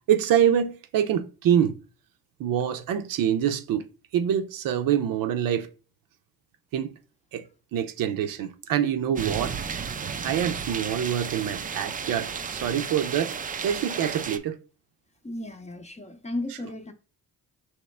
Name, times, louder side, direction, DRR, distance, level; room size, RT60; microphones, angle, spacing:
voice 1, 0.1-1.8 2.4-3.9 4.1-5.7 6.7-6.9 7.3-7.4 7.7-9.6 10.2-13.4 13.6-14.6, right 9 dB, 65° right, 0.6 m, -25 dB
sound 1, 9.2-14.4, right 6 dB, 25° right, 0.4 m, -33 dB
voice 2, 15.2-16.9, left 1 dB, 20° left, 0.7 m, -34 dB
4.3 x 3.1 x 3.2 m
supercardioid pair, 75°, 36 cm